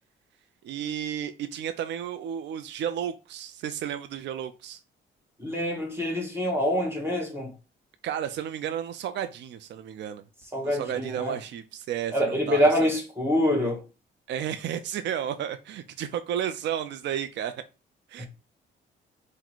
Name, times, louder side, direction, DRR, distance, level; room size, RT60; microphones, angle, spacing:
voice 1, 0.6-4.8 8.0-10.2 10.6-12.9 14.3-17.6 18.1-18.3, right 9 dB, 65° right, 0.4 m, -32 dB
voice 2, 5.4-7.5 10.5-11.3 12.1-13.8 18.2-18.3, equal, 10° right, 1.6 m, -25 dB
3.9 x 2.1 x 4.5 m
cardioid pair, 90°, 20 cm